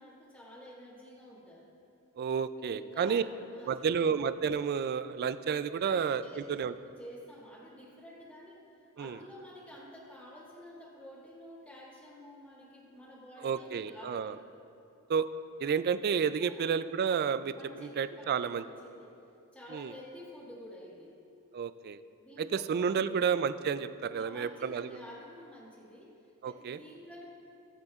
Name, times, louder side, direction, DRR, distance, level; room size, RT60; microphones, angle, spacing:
voice 1, 0.0-1.7 2.7-3.9 5.8-6.4 6.8-14.4 16.4-16.7 17.5-19.2 19.5-21.2 22.2-23.2 24.1-27.3, equal, 5° left, -7 dB, 1.9 m, -50 dB
voice 2, 2.2-3.2 3.7-6.7 9.0-9.2 13.4-14.3 15.1-15.3 15.6-17.5 17.8-18.6 19.7-19.9 21.5-22.0 22.4-24.9 26.4-26.8, right 6 dB, 45° right, 13 dB, 0.3 m, -31 dB
20.5 x 7.9 x 2.4 m, 2.6 s
head